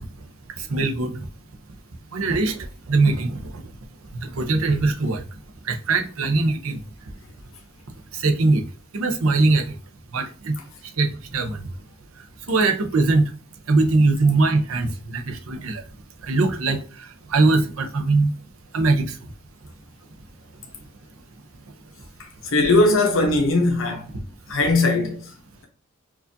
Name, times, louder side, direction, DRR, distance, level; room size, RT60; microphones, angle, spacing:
voice 1, 0.7-1.2 2.1-2.6 2.9-3.4 4.3-5.2 5.7-6.8 8.2-8.6 8.9-9.7 10.1-10.5 11.0-11.6 12.5-13.2 13.7-15.8 16.3-16.8 17.3-18.3 18.7-19.1, right 3 dB, 90° right, 0.7 m, -21 dB
voice 2, 22.4-24.1 24.5-25.3, left 2 dB, 70° left, 0.7 m, -19 dB
4.7 x 2.5 x 2.7 m
head